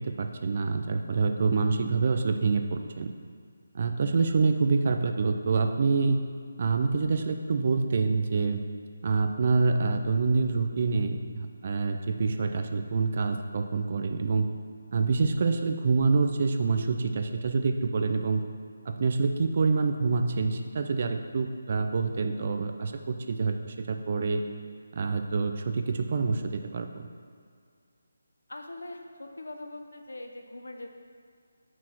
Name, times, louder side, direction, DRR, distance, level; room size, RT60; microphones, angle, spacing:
voice 1, 0.0-3.1 3.7-6.2 6.6-8.6 9.0-14.5 14.9-18.4 18.9-24.4 24.9-27.1, right 4 dB, 45° right, 6 dB, 0.6 m, -26 dB
voice 2, 28.5-30.9, left 2 dB, 85° left, 4 dB, 0.9 m, -42 dB
7.3 x 6.0 x 4.5 m, 2.1 s
figure-of-eight pair, 160°, 0 cm